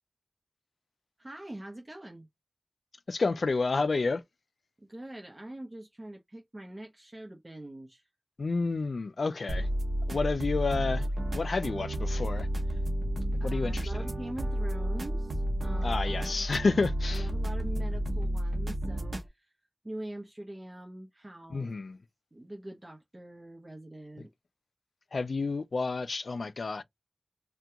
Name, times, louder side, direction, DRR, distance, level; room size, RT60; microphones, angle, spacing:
voice 1, 1.2-2.3 4.8-8.1 13.4-16.4 17.1-19.5 19.8-21.7 22.3-24.3, right 1 dB, 40° right, 0.7 m, -44 dB
voice 2, 3.1-4.2 8.4-9.7 10.1-11.1 11.3-12.5 13.4-13.9 15.8-17.3 21.5-22.0 25.1-26.8, left 4 dB, 90° left, 0.3 m, -30 dB
sound 1, 9.5-19.3, right 1 dB, 80° right, 0.8 m, -31 dB
2.8 x 2.2 x 3.4 m
cardioid pair, 40°, 0 cm